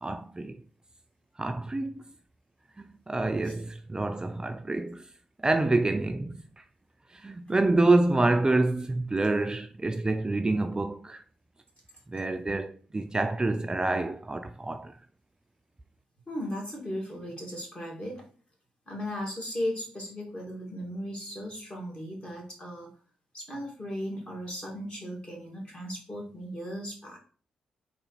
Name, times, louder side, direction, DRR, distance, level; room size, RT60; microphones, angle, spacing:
voice 1, 0.0-0.6 1.4-2.0 2.8-5.1 5.4-6.6 7.1-11.2 12.1-14.9, right 2 dB, 25° right, 0.4 m, -27 dB
voice 2, 16.3-18.3 18.9-22.9 23.3-27.2, equal, 35° left, 2.2 m, -36 dB
3.9 x 3.0 x 4.2 m
hypercardioid pair, 40°, 3 cm